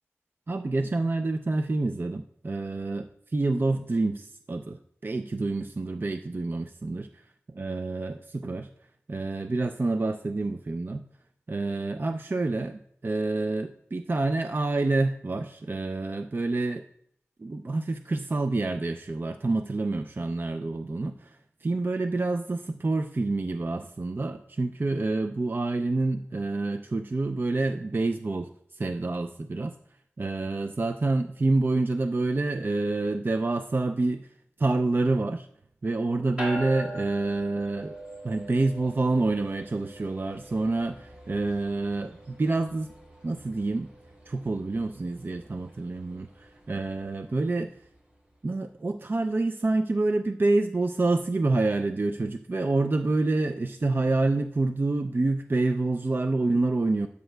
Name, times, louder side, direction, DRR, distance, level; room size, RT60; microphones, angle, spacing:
voice 1, 0.5-7.1 7.6-8.7 9.1-11.1 11.5-16.8 17.4-29.7 30.2-34.3 34.6-35.5 35.8-38.0 38.2-42.9 43.2-43.9 44.3-47.7 48.4-57.1, right 2 dB, 45° right, 7 dB, 0.4 m, -27 dB
sound 1, 36.4-48.0, right 1 dB, 20° right, 3.7 m, -43 dB
12.5 x 8.1 x 2.2 m, 0.70 s
wide cardioid pair, 70°, 5 cm